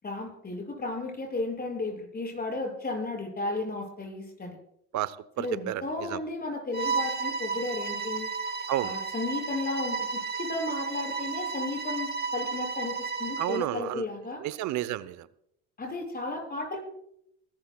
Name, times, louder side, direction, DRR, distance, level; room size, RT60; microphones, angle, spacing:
voice 1, 0.0-4.6 5.4-8.3 8.8-14.4 15.8-16.8, left 2 dB, 25° left, 1 dB, 6.8 m, -34 dB
voice 2, 4.9-5.8 6.1-6.2 8.7-8.9 13.4-14.0 14.4-15.3, right 13 dB, 55° right, 16 dB, 0.9 m, -31 dB
Bowed string instrument, 6.7-13.7, right 5 dB, 30° right, 1.7 m, -33 dB
29.5 x 13.5 x 2.4 m, 0.75 s
hypercardioid pair, 75°, 35 cm